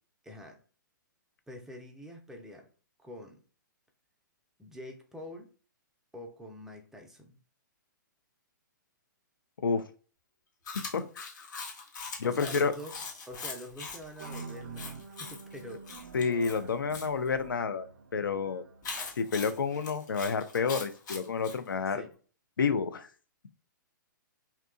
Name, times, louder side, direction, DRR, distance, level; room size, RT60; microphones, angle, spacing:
voice 1, 0.2-0.6 1.5-2.7 3.0-3.4 4.6-5.5 6.1-7.4 12.2-13.0 13.3-15.9 21.9-22.1, equal, 5° right, 2 dB, 0.4 m, -45 dB
Chewing mastication, 10.7-17.1 18.8-21.6, left 4 dB, 60° left, 0.9 m, -42 dB
voice 2, 12.2-12.7 16.1-18.7 19.2-22.0 22.6-23.1, left 5 dB, 85° left, 9 dB, 0.4 m, -29 dB
sound 1, 14.2-20.5, right 4 dB, 65° right, 0.5 m, -47 dB
2.7 x 2.3 x 2.4 m, 0.39 s
hypercardioid pair, 125°, 11 cm